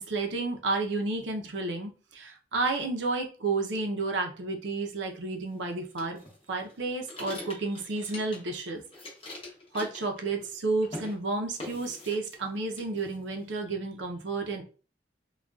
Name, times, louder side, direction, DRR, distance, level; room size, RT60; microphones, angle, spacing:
voice 1, 0.0-6.2 6.5-8.8 9.7-14.6, right 3 dB, 65° right, 3 dB, 0.6 m, -31 dB
sound 1, 6.0-8.6 8.9-10.6 10.8-11.2 11.6-12.5 12.8-13.5, left 1 dB, 30° left, 0.8 m, -43 dB
3.7 x 2.3 x 2.3 m, 0.37 s
head